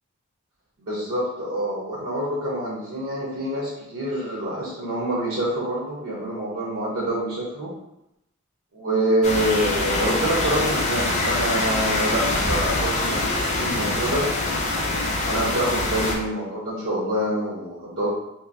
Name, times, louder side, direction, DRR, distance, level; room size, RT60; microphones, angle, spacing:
voice 1, 0.8-7.7 8.7-14.3 15.3-18.1, right 1 dB, 85° right, -6 dB, 0.9 m, -26 dB
sound 1, 9.2-16.2, left 2 dB, 35° left, 0.6 m, -24 dB
3.0 x 2.9 x 2.6 m, 0.83 s
head